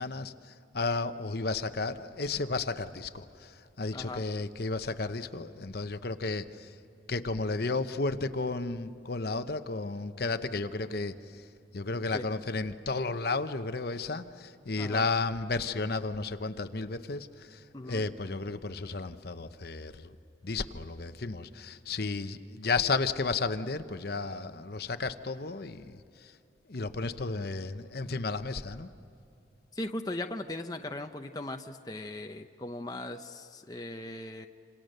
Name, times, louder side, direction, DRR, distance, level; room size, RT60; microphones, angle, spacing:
voice 1, 0.0-6.7 7.1-11.4 11.7-20.2 20.4-26.3 26.7-28.9, left 3 dB, 55° left, 10 dB, 0.9 m, -33 dB
voice 2, 3.9-4.2 12.1-12.2 14.8-15.0 17.7-18.1 29.7-34.5, left 1 dB, 20° left, 5 dB, 0.7 m, -38 dB
27.5 x 27.5 x 6.6 m, 2.7 s
head